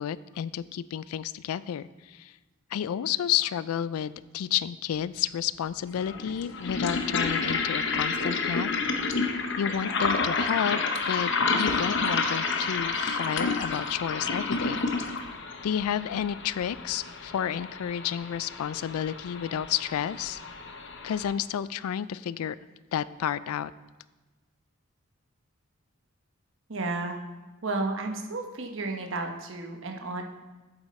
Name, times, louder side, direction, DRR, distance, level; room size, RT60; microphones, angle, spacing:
voice 1, 0.0-2.3 2.7-9.0 9.6-10.8 11.1-11.3 11.6-14.8 15.6-20.4 21.0-22.6 22.9-23.7, left 9 dB, 90° left, 18 dB, 0.3 m, -31 dB
sound 1, 5.0-5.1 5.9-21.3, left 4 dB, 55° left, 0.7 m, -30 dB
voice 2, 26.7-27.2 27.6-30.2, right 2 dB, 60° right, 3 dB, 1.0 m, -32 dB
7.9 x 7.5 x 4.2 m, 1.2 s
head